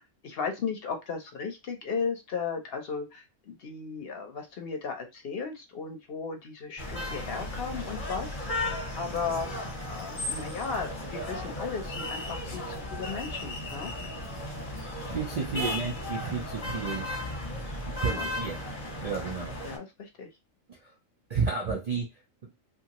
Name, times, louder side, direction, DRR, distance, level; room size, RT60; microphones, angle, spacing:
voice 1, 0.0-8.4 8.9-13.9 15.6-15.8 18.0-18.3 19.6-20.3 21.7-21.8, left 5 dB, 55° left, 0.8 m, -35 dB
sound 1, 6.8-19.8, left 1 dB, 30° left, 1.0 m, -35 dB
voice 2, 14.7-17.1 17.8-18.7 19.0-19.6 20.7-20.9 21.3-22.1 22.4-22.5, right 5 dB, 80° right, 0.3 m, -32 dB
2.8 x 2.6 x 2.9 m
omnidirectional pair, 1.4 m